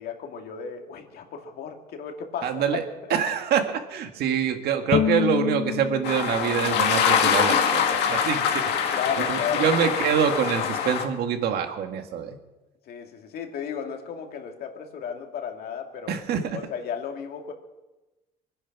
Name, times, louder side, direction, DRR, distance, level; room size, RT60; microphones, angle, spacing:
voice 1, 0.0-2.6 8.9-9.6 12.9-16.2 16.5-17.5, left 7 dB, 65° left, 3 dB, 2.4 m, -34 dB
voice 2, 2.4-2.8 3.1-9.0 9.3-12.4 16.1-16.6, right 8 dB, 70° right, 6 dB, 1.9 m, -25 dB
Bowed string instrument, 4.9-8.1, left 9 dB, 35° left, 0.5 m, -29 dB
sound 1, 6.0-11.0, left 7 dB, 85° left, 2.0 m, -24 dB
23.5 x 10.0 x 6.0 m, 1.1 s
cardioid pair, 110°, 17 cm